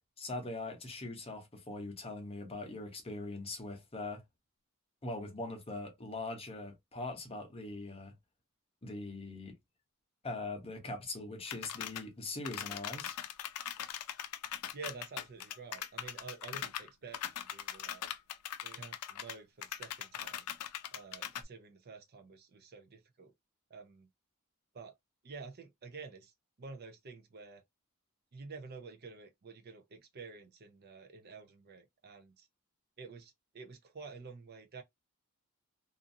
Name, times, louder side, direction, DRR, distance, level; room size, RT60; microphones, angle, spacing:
voice 1, 0.2-4.2 5.0-8.1 8.8-9.6 10.2-13.1, left 2 dB, 25° left, 0.8 m, -41 dB
sound 1, 11.5-12.0 12.4-19.3 19.6-21.4, left 10 dB, 85° left, 0.4 m, -41 dB
voice 2, 14.7-18.0 18.6-20.5 20.9-23.3 23.7-24.1 24.7-24.9 25.2-26.3 26.6-27.6 28.3-32.5 33.0-34.8, right 4 dB, 45° right, 0.5 m, -50 dB
2.6 x 2.5 x 2.6 m
head